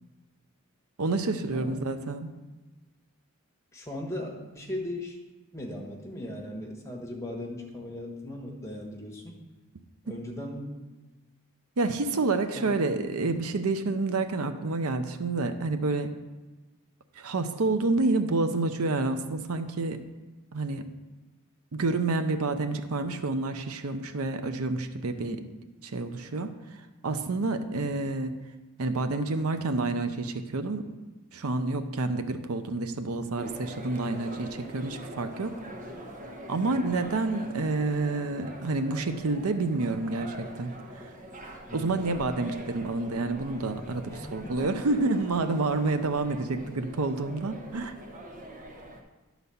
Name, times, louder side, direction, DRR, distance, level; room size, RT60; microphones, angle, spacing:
voice 1, 1.0-2.3 11.8-16.1 17.2-20.0 20.5-20.9 21.7-25.4 25.8-28.3 28.8-30.9 31.3-35.5 36.5-41.1 41.7-48.0, right 3 dB, 75° right, 9 dB, 0.7 m, -29 dB
voice 2, 3.7-5.2 5.5-9.4 10.0-10.8 12.5-12.8 25.1-25.5 36.5-36.8 41.7-42.1 44.0-44.9, left 1 dB, 15° left, -2 dB, 1.4 m, -38 dB
sound 1, 33.4-49.0, equal, 35° right, 1.0 m, -43 dB
11.0 x 4.1 x 6.9 m, 1.2 s
head